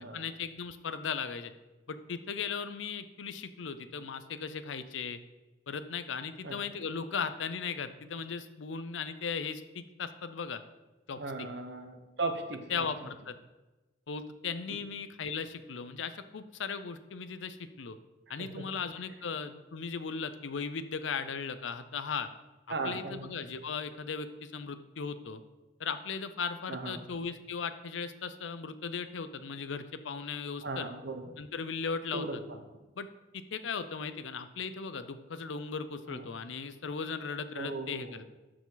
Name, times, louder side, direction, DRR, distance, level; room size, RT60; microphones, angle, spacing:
voice 1, 0.0-1.5 1.9-5.2 5.7-10.6 11.1-11.5 12.7-13.4 14.1-18.0 18.3-22.3 22.7-25.4 25.8-30.9 31.4-32.4 33.0-33.1 33.3-38.3, left 5 dB, 75° left, 11 dB, 0.6 m, -37 dB
voice 2, 11.2-13.1 18.3-18.5 22.7-23.3 26.7-27.0 30.6-31.4 32.1-32.4 36.1-36.3 37.6-38.2, right 3 dB, 65° right, 5 dB, 1.0 m, -37 dB
12.5 x 4.9 x 3.9 m, 1.1 s
head